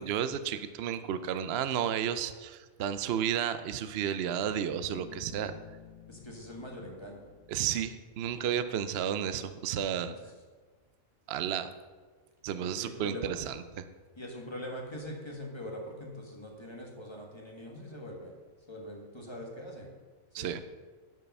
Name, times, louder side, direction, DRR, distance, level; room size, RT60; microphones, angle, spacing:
voice 1, 0.0-5.5 7.5-10.1 11.3-11.7 12.4-13.8 20.3-20.6, right 9 dB, 60° right, 11 dB, 0.7 m, -32 dB
Bass guitar, 4.9-8.6, left 9 dB, 90° left, 2.0 m, -53 dB
voice 2, 6.1-7.3 12.8-13.3 14.2-18.4 18.7-19.9 20.4-20.5, equal, 20° left, -1 dB, 1.6 m, -42 dB
11.0 x 5.6 x 5.4 m, 1.4 s
omnidirectional pair, 1.5 m